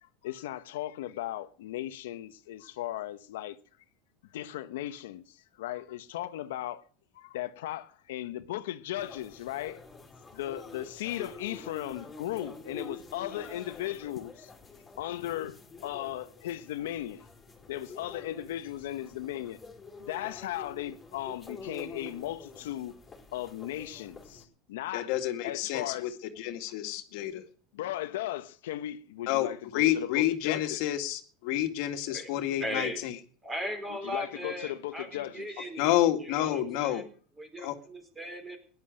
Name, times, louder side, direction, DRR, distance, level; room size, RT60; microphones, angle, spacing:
voice 1, 0.0-3.6 4.3-6.8 7.1-9.8 10.3-14.5 15.0-17.3 17.7-19.6 20.0-22.9 23.3-25.1 25.4-26.2 27.7-30.8 33.9-35.5, left 13 dB, 90° left, 1.0 m, -37 dB
sound 1, 9.0-24.4, left 3 dB, 15° left, 4.4 m, -47 dB
voice 2, 24.9-26.1 26.4-27.4 29.3-33.2 35.8-37.0 37.6-37.8, left 13 dB, 60° left, 2.1 m, -29 dB
voice 3, 32.6-33.0 33.4-35.9 36.2-37.0 37.4-38.6, equal, 15° right, 4.5 m, -38 dB
17.0 x 11.0 x 6.4 m
supercardioid pair, 145°, 0 cm